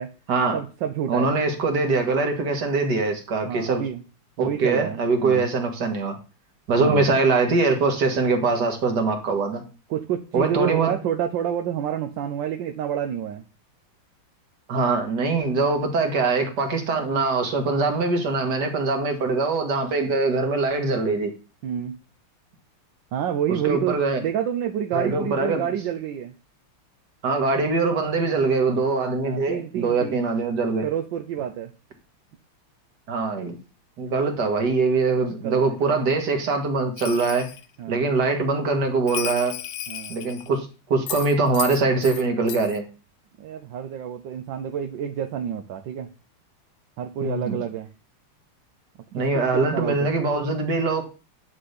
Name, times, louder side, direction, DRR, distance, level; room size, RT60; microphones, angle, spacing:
voice 1, 0.5-1.3 3.5-4.0 4.4-5.5 6.8-7.1 9.9-13.4 21.6-22.0 23.1-26.3 29.2-30.3 30.8-31.7 35.4-35.8 37.8-38.1 39.9-40.2 43.4-46.1 47.0-47.9 49.1-50.1, right 9 dB, 65° right, 1.3 m, -28 dB
voice 2, 1.1-3.8 4.4-6.2 6.7-9.6 10.3-10.9 14.7-21.3 23.5-24.2 24.9-25.6 27.2-30.9 33.1-33.6 34.0-37.5 37.9-39.5 40.1-42.9 47.2-47.6 49.1-51.0, right 3 dB, 50° right, 2.1 m, -23 dB
Bell, 37.0-37.7 39.1-40.6 41.1-42.2 42.5-42.8, left 12 dB, 85° left, 1.6 m, -34 dB
9.8 x 3.9 x 6.6 m
omnidirectional pair, 2.4 m